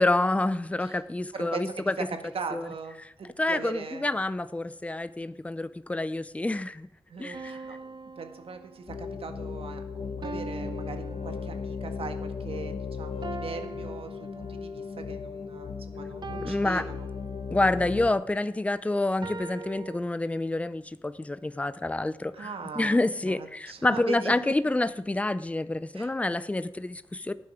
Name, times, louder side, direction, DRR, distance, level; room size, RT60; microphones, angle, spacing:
voice 1, 0.0-1.9 2.5-2.6 3.4-6.9 7.2-7.5 16.4-16.8 17.5-22.5 22.8-27.3, left 2 dB, 15° left, 14 dB, 0.6 m, -28 dB
voice 2, 1.3-4.1 7.1-17.1 22.3-24.5 25.9-26.1, right 5 dB, 70° right, 6 dB, 1.8 m, -40 dB
sound 1, 7.3-9.1 10.2-11.9 13.2-14.9 16.2-17.7 19.2-20.0, right 4 dB, 50° right, 0.8 m, -42 dB
sound 2, 8.9-18.1, left 5 dB, 70° left, 1.4 m, -36 dB
18.0 x 9.6 x 5.0 m, 0.82 s
wide cardioid pair, 115°, 10 cm